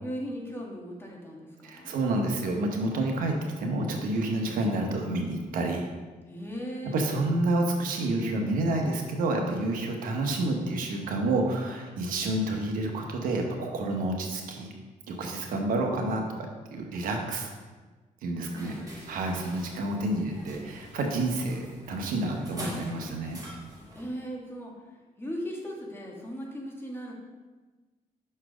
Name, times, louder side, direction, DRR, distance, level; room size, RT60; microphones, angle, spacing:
voice 1, 0.0-1.9 6.3-7.1 18.4-19.0 23.9-24.7 25.2-27.1, equal, 15° left, -2 dB, 1.6 m, -38 dB
voice 2, 1.6-5.9 6.8-14.7 15.1-17.5 18.2-18.7 19.1-23.4, right 2 dB, 80° right, 2 dB, 1.0 m, -29 dB
sound 1, 18.5-24.1, equal, 25° right, 1.7 m, -44 dB
6.0 x 4.4 x 4.9 m, 1.3 s
cardioid pair, 90°, 14 cm